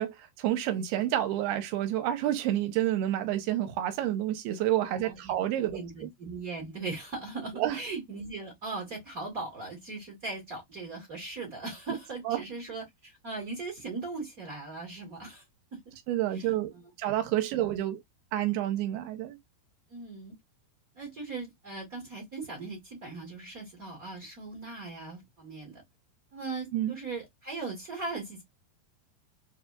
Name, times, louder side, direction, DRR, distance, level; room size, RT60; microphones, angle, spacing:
voice 1, 0.0-6.1 7.5-7.8 12.3-12.4 16.1-16.7 17.0-18.0 18.3-19.4 26.7-27.0, right 13 dB, 80° right, 2.6 m, -29 dB
voice 2, 5.0-5.3 5.7-15.4 15.7-15.9 16.3-16.9 17.5-17.7 19.9-20.3 20.9-25.8 26.3-28.4, right 3 dB, 55° right, 0.9 m, -39 dB
6.9 x 2.3 x 2.3 m
omnidirectional pair, 4.7 m